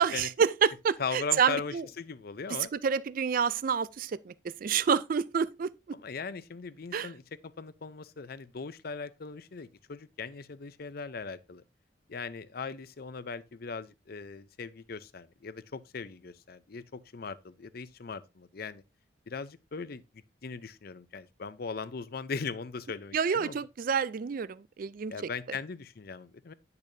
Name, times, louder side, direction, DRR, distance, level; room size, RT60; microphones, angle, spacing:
voice 1, 0.0-1.8 2.7-6.0 6.9-7.1 23.1-25.1, right 7 dB, 50° right, 0.4 m, -28 dB
voice 2, 1.0-2.7 5.9-11.6 12.1-18.8 19.3-20.0 20.4-23.6 25.1-26.5, left 5 dB, 55° left, 0.6 m, -39 dB
10.0 x 6.8 x 2.7 m
head